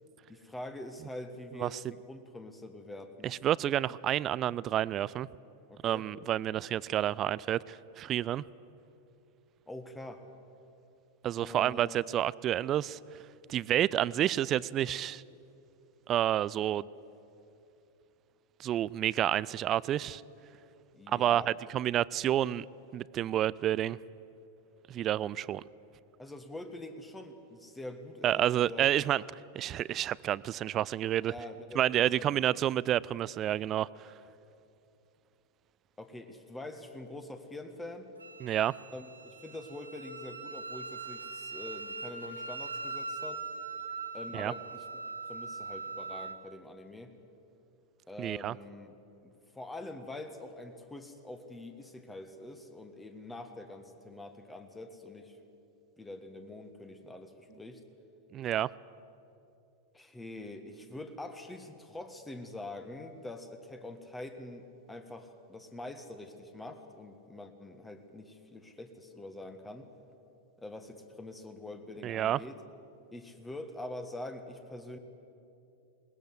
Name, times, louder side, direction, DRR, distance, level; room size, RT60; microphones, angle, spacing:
voice 1, 0.3-3.3 5.7-6.1 9.7-10.2 11.3-12.1 20.9-21.5 26.2-28.9 31.3-32.6 36.0-38.1 38.9-43.4 44.1-44.8 45.3-47.1 48.1-48.9 49.2-55.4 56.0-57.8 59.9-69.9 70.6-72.6 73.1-75.0, left 2 dB, 10° left, 7 dB, 1.7 m, -45 dB
voice 2, 3.2-5.3 5.8-8.4 11.2-13.0 13.5-15.2 16.1-16.9 18.6-20.2 21.1-22.7 22.9-24.0 24.9-25.6 28.2-29.2 29.5-31.3 31.8-34.1 38.4-38.7 44.3-44.5 48.2-48.6 58.3-58.7 72.0-72.4, right 11 dB, 30° right, 22 dB, 0.4 m, -29 dB
Wind instrument woodwind instrument, 38.2-46.4, right 4 dB, 80° right, 1.4 m, -41 dB
21.0 x 20.0 x 7.8 m, 2.8 s
figure-of-eight pair, 90°, 0 cm